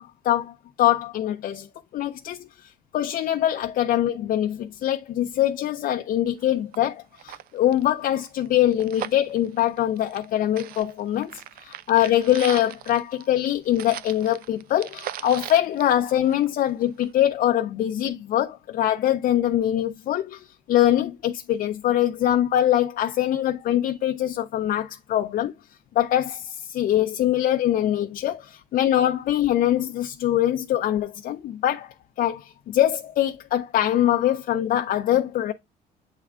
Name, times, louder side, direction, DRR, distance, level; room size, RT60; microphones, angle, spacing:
voice 1, 0.0-1.7 1.9-25.5 26.0-35.5, left 12 dB, 55° left, 0.5 m, -23 dB
sound 1, 6.4-6.5 6.7-6.8 7.1-10.3 10.6-16.7 17.0-17.1, right 12 dB, 60° right, 0.4 m, -39 dB
8.2 x 3.6 x 3.3 m
cardioid pair, 110°, 17 cm